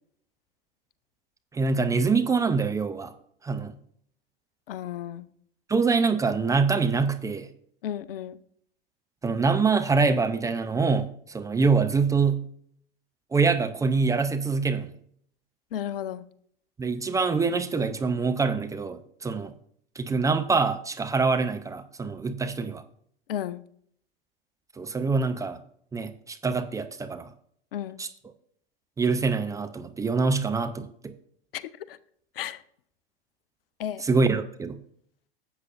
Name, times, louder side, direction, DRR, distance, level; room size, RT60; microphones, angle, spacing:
voice 1, 1.5-3.1 3.4-3.8 5.7-7.5 9.2-12.4 13.3-14.9 16.8-19.5 20.0-22.8 24.8-25.6 25.9-27.3 28.0-28.1 29.0-31.1 34.0-34.8, right 4 dB, 10° right, 8 dB, 0.5 m, -25 dB
voice 2, 4.7-5.3 7.8-8.4 15.7-16.2 23.3-23.6 27.7-28.0 31.5-31.6 31.9-32.0 32.4-32.6 33.8-34.0, left 10 dB, 65° left, 17 dB, 0.6 m, -33 dB
12.5 x 8.0 x 2.5 m, 0.65 s
figure-of-eight pair, 95°, 31 cm